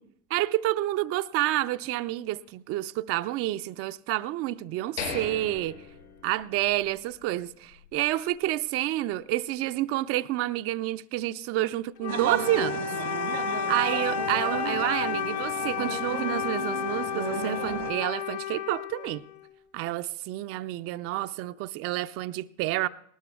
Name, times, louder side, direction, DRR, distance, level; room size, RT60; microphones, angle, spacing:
voice 1, 0.3-5.8 6.2-12.9 13.7-19.2 19.7-22.9, right 15 dB, 35° right, 0.4 m, -29 dB
sound 1, 5.0-6.9 7.2-7.3 7.8-8.0, left 5 dB, 80° left, 4.8 m, -38 dB
Wind instrument woodwind instrument, 12.0-19.6, left 9 dB, 45° left, 1.1 m, -32 dB
sound 2, 12.1-17.9, right 6 dB, 80° right, 1.2 m, -34 dB
19.5 x 18.0 x 2.3 m
figure-of-eight pair, 70°, 41 cm